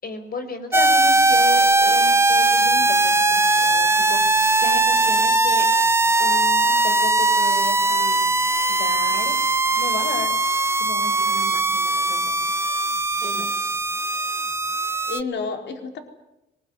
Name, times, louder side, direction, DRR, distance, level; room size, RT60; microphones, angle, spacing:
voice 1, 0.0-5.7 6.2-8.2 8.7-9.3 9.8-10.3 10.8-12.4, left 3 dB, 50° left, 8 dB, 5.5 m, -34 dB
sound 1, 0.7-15.2, right 2 dB, 15° right, 0.8 m, -19 dB
voice 2, 13.2-13.5 15.1-16.0, left 4 dB, 65° left, 4 dB, 4.4 m, -30 dB
23.0 x 20.5 x 9.8 m, 0.88 s
cardioid pair, 90°, 20 cm